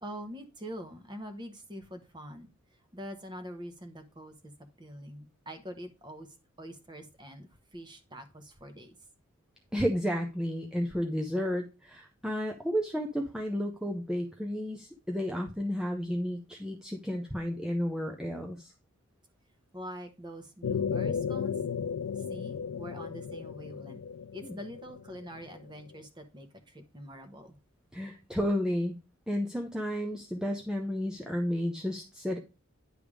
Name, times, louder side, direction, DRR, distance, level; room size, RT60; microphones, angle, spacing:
voice 1, 0.0-2.5 2.9-4.5 4.8-8.9 19.7-21.6 22.2-24.0 24.3-27.6, equal, 20° right, 7 dB, 1.0 m, -44 dB
voice 2, 9.7-18.7 24.4-24.5 27.9-29.0 29.3-32.4, equal, 5° right, 2 dB, 0.5 m, -32 dB
sound 1, 20.6-25.7, left 6 dB, 70° left, 0.4 m, -34 dB
10.0 x 3.5 x 4.7 m, 0.30 s
head